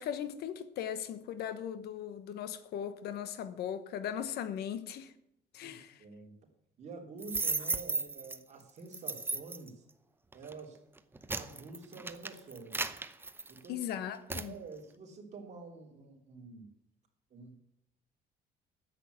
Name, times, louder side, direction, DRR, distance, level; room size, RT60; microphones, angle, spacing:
voice 1, 0.0-5.1 5.5-6.0 13.7-14.5, left 9 dB, 70° left, 1.1 m, -38 dB
voice 2, 5.6-6.3 6.8-9.8 10.3-10.8 11.3-13.0 13.5-13.9 14.4-16.7 17.3-17.6, right 4 dB, 40° right, 3.4 m, -48 dB
sound 1, 7.2-8.4 8.9-9.7 10.3-10.5 11.0-13.8 14.3-14.5, right 3 dB, 15° right, 0.7 m, -35 dB
10.0 x 8.2 x 8.2 m
cardioid pair, 125°, 17 cm